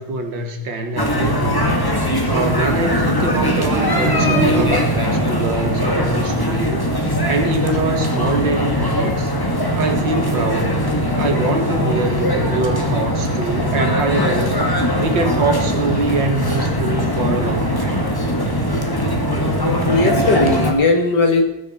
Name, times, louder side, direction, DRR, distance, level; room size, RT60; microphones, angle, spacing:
voice 1, 0.0-1.7 2.3-6.8 7.3-9.3 9.8-10.7 11.2-14.6 15.0-18.1, right 3 dB, 65° right, 6 dB, 2.2 m, -24 dB
sound 1, 1.0-20.7, equal, 10° left, 1.8 m, -20 dB
sound 2, 3.3-5.3, right 3 dB, 90° right, 2.5 m, -22 dB
voice 2, 19.5-21.4, left 3 dB, 55° left, 3 dB, 2.6 m, -17 dB
20.0 x 9.9 x 4.3 m, 0.88 s
omnidirectional pair, 2.2 m